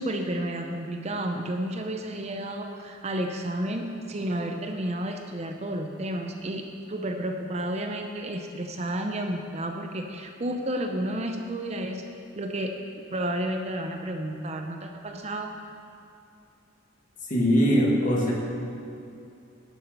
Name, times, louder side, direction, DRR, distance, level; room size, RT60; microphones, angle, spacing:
voice 1, 0.0-12.0 12.4-12.7 13.1-15.5, right 1 dB, 30° right, 4 dB, 0.6 m, -31 dB
voice 2, 17.3-18.3, equal, 40° left, -3 dB, 1.8 m, -21 dB
11.0 x 6.3 x 6.7 m, 2.7 s
head